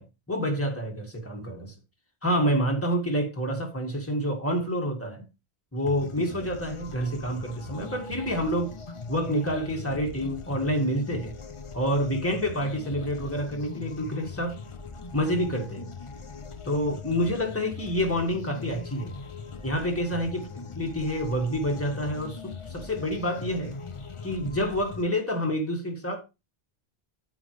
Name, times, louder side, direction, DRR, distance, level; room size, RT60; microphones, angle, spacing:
voice 1, 0.0-1.8 2.2-5.2 5.7-8.8 9.1-11.4 11.7-14.6 15.1-15.9 16.7-19.2 19.6-20.5 20.7-23.8 24.2-26.2, equal, 15° left, 1.9 m, -28 dB
sound 1, 5.9-25.0, left 4 dB, 35° left, 0.7 m, -40 dB
9.1 x 8.7 x 3.2 m
omnidirectional pair, 1.1 m